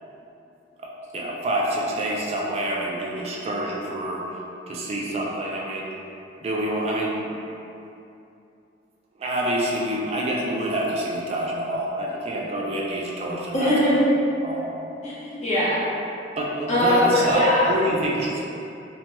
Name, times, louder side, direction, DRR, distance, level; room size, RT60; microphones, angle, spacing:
voice 1, 0.8-4.2 4.7-5.9 6.4-7.4 9.2-13.7 14.4-14.7 16.4-18.4, right 1 dB, 35° right, -3 dB, 0.3 m, -27 dB
voice 2, 13.5-14.1 15.0-15.8 16.7-17.7, left 1 dB, 40° left, -8 dB, 0.6 m, -21 dB
2.9 x 2.1 x 2.8 m, 2.7 s
head